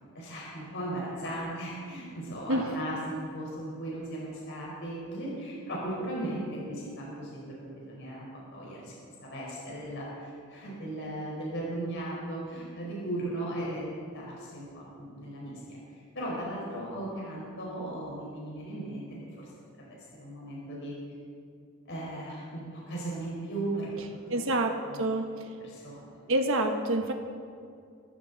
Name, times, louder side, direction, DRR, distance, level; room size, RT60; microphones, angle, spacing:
voice 1, 0.1-15.5 15.9-19.0 19.4-19.5 20.1-20.9 21.9-23.9 24.9-25.0 25.6-26.1, right 1 dB, 60° left, -5 dB, 4.6 m, -37 dB
voice 2, 24.3-25.6 26.3-27.1, right 1 dB, 70° right, 4 dB, 1.2 m, -28 dB
21.5 x 15.0 x 4.1 m, 2.3 s
head